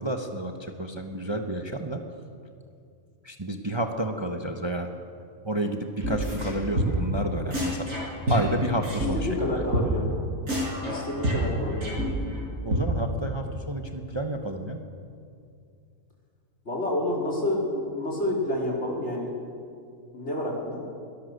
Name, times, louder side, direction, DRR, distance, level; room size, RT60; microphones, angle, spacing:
voice 1, 0.0-2.0 3.2-4.9 5.4-7.9 8.3-9.5 12.6-14.8, right 1 dB, 20° right, 5 dB, 1.0 m, -30 dB
sound 1, 6.0-6.5 6.8-7.2 7.5-9.1 9.4-9.5 9.7-9.9 10.1-10.2 10.5-12.4 12.7-12.8, right 1 dB, 85° right, 6.9 m, -27 dB
voice 2, 9.1-10.1 10.9-11.9 16.7-19.3 20.1-20.8, left 1 dB, 55° left, -3 dB, 4.5 m, -29 dB
22.5 x 18.5 x 6.7 m, 2.4 s
omnidirectional pair, 1.4 m